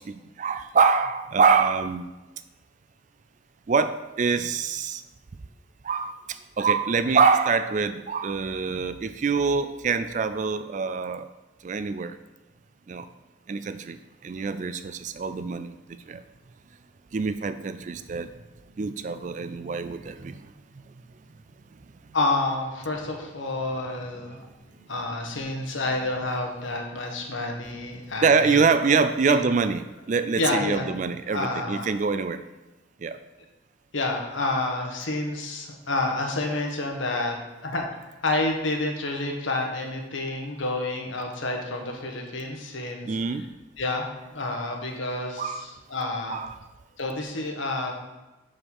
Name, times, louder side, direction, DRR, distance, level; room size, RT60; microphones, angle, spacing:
voice 1, 0.1-2.1 3.7-5.0 5.8-11.3 11.6-12.2 12.9-13.1 13.5-14.0 14.2-15.7 16.1-16.2 17.1-18.3 18.8-20.4 28.2-32.4 33.0-33.2 43.0-43.4 45.4-45.7 46.3-46.6, right 5 dB, 40° right, 11 dB, 0.3 m, -25 dB
voice 2, 22.1-24.5 24.9-29.0 29.3-29.4 30.4-30.9 31.3-31.9 33.9-37.9 38.2-43.5 43.8-46.4 47.0-47.9, left 2 dB, 75° left, 2 dB, 1.3 m, -29 dB
6.3 x 5.4 x 5.4 m, 1.1 s
head